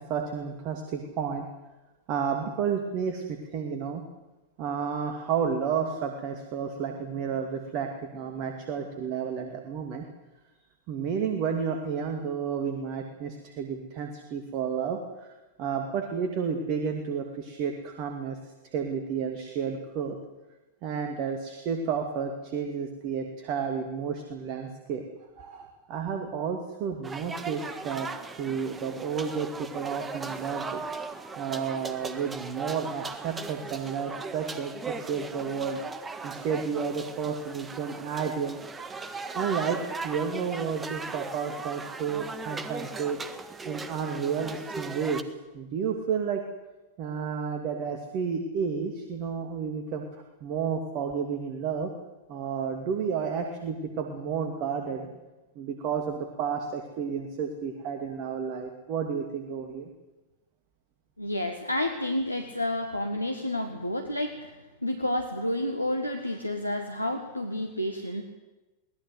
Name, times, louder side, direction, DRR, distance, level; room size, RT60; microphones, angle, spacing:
voice 1, 0.1-1.5 2.1-4.0 4.6-10.1 10.9-15.3 15.6-18.4 18.7-20.2 20.8-25.0 25.4-28.1 28.4-30.8 31.4-35.8 36.2-38.8 39.3-43.2 43.6-45.2 45.5-46.4 47.0-50.1 50.4-51.9 52.3-55.1 55.6-59.9, right 6 dB, 40° right, 5 dB, 2.6 m, -31 dB
sound 1, 27.0-45.2, right 4 dB, 15° right, 1.7 m, -38 dB
voice 2, 61.2-64.6 64.8-68.2, left 1 dB, 90° left, 5 dB, 1.6 m, -30 dB
23.0 x 18.5 x 8.0 m, 1.1 s
figure-of-eight pair, 90°, 0 cm